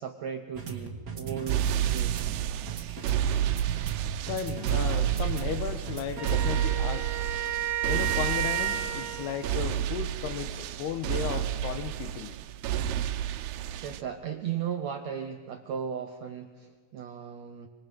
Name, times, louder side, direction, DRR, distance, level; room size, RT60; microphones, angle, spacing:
voice 1, 0.0-2.2 13.8-17.7, right 8 dB, 70° right, 5 dB, 1.6 m, -36 dB
sound 1, 0.5-6.5, right 6 dB, 35° right, 1.6 m, -39 dB
sound 2, 1.5-14.0, right 10 dB, 90° right, 2.8 m, -30 dB
voice 2, 4.3-7.1 7.8-12.3, left 9 dB, 90° left, 9 dB, 3.2 m, -35 dB
Wind instrument woodwind instrument, 6.2-9.5, right 11 dB, 55° right, 2.2 m, -32 dB
26.0 x 26.0 x 5.2 m, 1.4 s
omnidirectional pair, 4.5 m